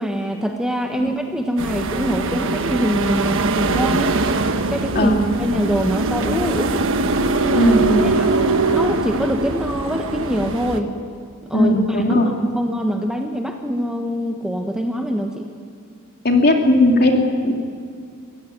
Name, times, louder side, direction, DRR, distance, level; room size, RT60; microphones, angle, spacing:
voice 1, 0.0-4.3 4.7-6.9 7.4-7.8 8.0-10.9 11.4-15.5, equal, 5° right, 3 dB, 1.3 m, -24 dB
sound 1, 1.6-10.8, right 3 dB, 60° right, 1.2 m, -22 dB
voice 2, 7.6-8.0 11.5-12.3 16.2-17.6, left 1 dB, 45° left, 2 dB, 2.9 m, -16 dB
24.0 x 16.0 x 9.4 m, 2.3 s
head